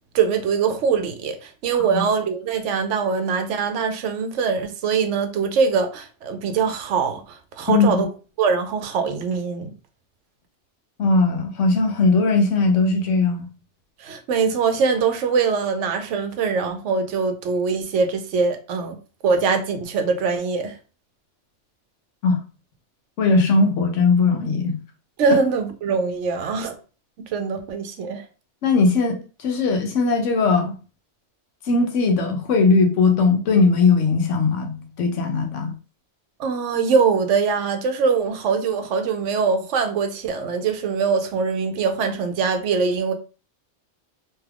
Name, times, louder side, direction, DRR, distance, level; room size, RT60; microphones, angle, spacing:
voice 1, 0.1-8.1 8.4-9.7 14.0-19.0 19.2-20.7 25.2-26.7 27.3-28.2 36.4-43.1, right 5 dB, 80° right, 1.0 m, -22 dB
voice 2, 7.7-8.0 11.0-13.5 22.2-22.4 23.2-24.8 25.3-25.4 28.6-29.2 29.4-30.7 31.7-35.8, left 4 dB, 85° left, 1.1 m, -19 dB
3.0 x 2.3 x 3.4 m
omnidirectional pair, 1.2 m